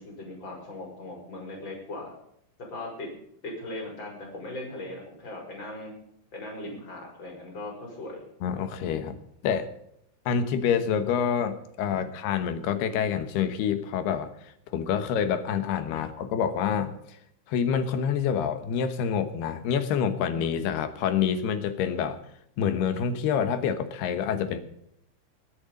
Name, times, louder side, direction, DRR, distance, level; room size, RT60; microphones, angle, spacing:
voice 1, 0.0-2.1 2.6-3.1 3.4-5.9 6.3-8.2 11.9-12.0, left 2 dB, 25° left, 1 dB, 5.3 m, -39 dB
voice 2, 8.4-9.7 10.3-14.3 14.7-17.0 17.5-22.2 22.6-24.6, left 7 dB, 70° left, 10 dB, 2.9 m, -27 dB
22.0 x 8.7 x 5.3 m, 0.74 s
omnidirectional pair, 5.4 m